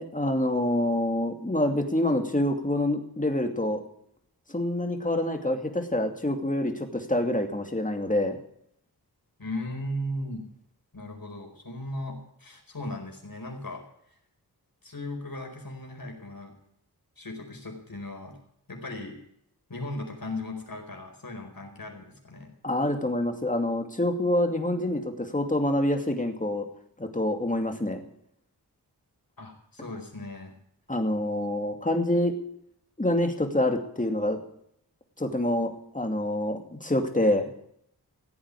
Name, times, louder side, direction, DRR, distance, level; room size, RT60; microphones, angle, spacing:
voice 1, 0.0-3.8 4.5-8.4 22.6-26.7 27.0-28.0 30.9-32.3 33.0-34.4 35.2-37.5, left 1 dB, 20° left, 4 dB, 2.5 m, -26 dB
voice 2, 9.4-10.4 10.9-13.8 14.8-16.5 17.2-18.4 18.7-19.2 19.7-22.5 29.4-30.5, left 1 dB, 60° left, 2 dB, 4.8 m, -37 dB
16.0 x 8.7 x 8.4 m, 0.71 s
cardioid pair, 50°, 39 cm